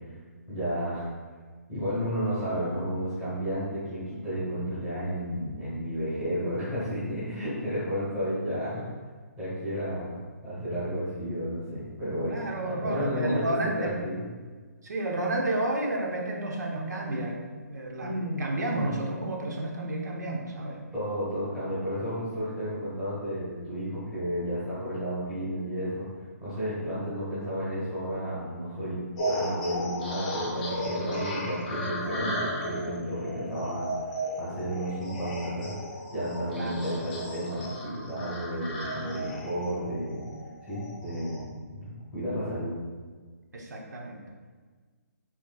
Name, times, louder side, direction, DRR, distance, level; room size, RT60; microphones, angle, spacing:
voice 1, 0.5-1.1 1.7-8.9 9.4-10.2 10.4-14.2 18.0-18.9 20.9-26.1 26.4-35.8 36.1-40.2 40.6-42.8, equal, 5° right, -13 dB, 1.1 m, -32 dB
voice 2, 12.3-14.0 14.8-20.8 36.6-36.8 43.5-44.2, right 1 dB, 80° right, 0 dB, 1.0 m, -31 dB
sound 1, 29.2-41.4, equal, 20° left, 0.7 m, -35 dB
7.1 x 3.2 x 2.3 m, 1.5 s
hypercardioid pair, 180°, 9 cm